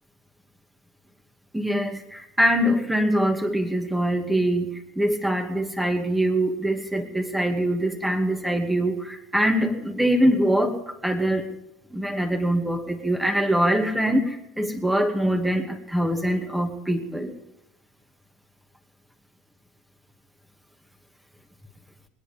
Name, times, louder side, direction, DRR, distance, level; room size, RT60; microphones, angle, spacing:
voice 1, 1.5-11.5 11.9-17.3, equal, 5° right, 5 dB, 2.4 m, -23 dB
21.0 x 10.5 x 5.4 m, 0.89 s
hypercardioid pair, 70°, 0 cm